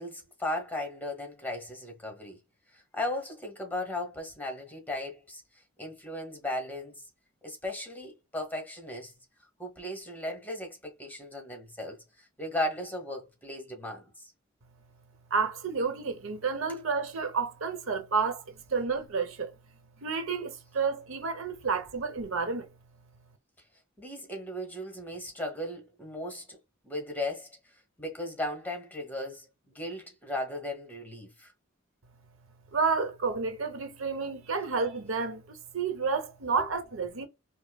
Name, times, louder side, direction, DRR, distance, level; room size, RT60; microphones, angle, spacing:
voice 1, 0.0-2.4 2.7-5.4 5.8-7.0 7.4-9.1 9.6-14.3 24.0-26.6 26.8-27.6 28.0-31.5 36.6-36.7, left 1 dB, 10° left, 1.2 m, -36 dB
voice 2, 15.3-19.6 20.0-22.7 32.7-37.3, right 5 dB, 80° right, 0.9 m, -30 dB
5.3 x 2.0 x 2.3 m
head